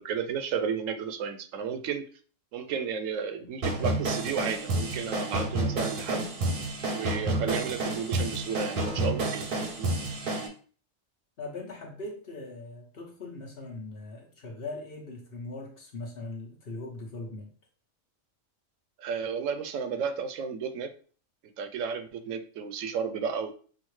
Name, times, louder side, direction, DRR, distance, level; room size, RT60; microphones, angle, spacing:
voice 1, 0.0-2.1 2.5-6.3 6.9-9.9 19.0-20.9 21.6-23.5, right 6 dB, 75° right, 9 dB, 0.9 m, -33 dB
sound 1, 3.6-10.5, right 2 dB, 50° right, 0.8 m, -30 dB
voice 2, 11.4-17.5, left 2 dB, 50° left, 1 dB, 1.0 m, -40 dB
5.7 x 2.4 x 3.1 m, 0.42 s
omnidirectional pair, 1.4 m